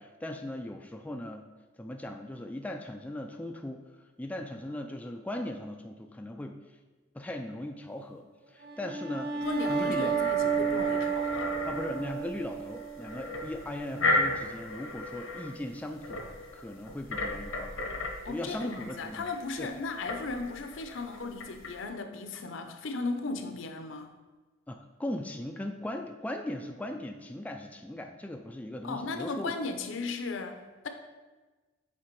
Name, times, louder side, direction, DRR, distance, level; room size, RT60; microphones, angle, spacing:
voice 1, 0.0-1.5 1.8-3.8 4.2-6.6 7.1-9.4 9.7-10.1 11.7-17.9 18.3-19.3 19.6-19.7 24.7-29.5, left 1 dB, 10° left, 4 dB, 0.3 m, -38 dB
sound 1, 8.6-13.9, right 6 dB, 55° right, 0.7 m, -32 dB
voice 2, 9.3-11.6 18.2-24.1 28.8-30.9, left 3 dB, 70° left, 7 dB, 0.6 m, -36 dB
sound 2, 9.4-21.8, left 2 dB, 90° left, 1.0 m, -36 dB
7.5 x 3.5 x 4.6 m, 1.2 s
head